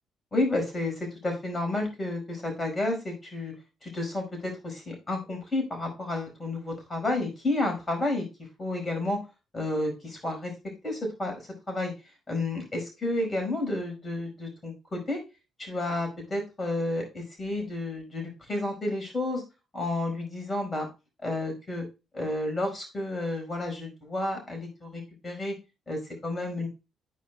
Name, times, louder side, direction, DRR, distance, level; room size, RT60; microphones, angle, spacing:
voice 1, 0.3-3.5 3.8-8.2 8.6-9.2 9.5-10.5 10.8-11.9 12.3-15.2 15.6-19.4 19.7-20.9 21.2-21.8 22.1-25.5 25.9-26.7, left 2 dB, 30° left, 2 dB, 4.8 m, -31 dB
13.5 x 4.9 x 2.2 m, 0.27 s
hypercardioid pair, 45°, 0 cm